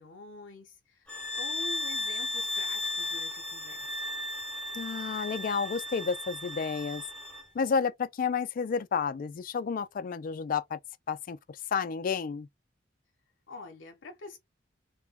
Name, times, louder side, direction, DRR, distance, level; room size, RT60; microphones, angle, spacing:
voice 1, 0.0-3.9 13.5-14.4, left 3 dB, 75° left, 0.7 m, -46 dB
sound 1, 1.1-7.5, left 2 dB, 5° left, 0.6 m, -35 dB
voice 2, 4.7-7.0 7.5-10.8 11.1-12.5, left 6 dB, 45° left, 0.3 m, -31 dB
2.2 x 2.1 x 3.5 m
head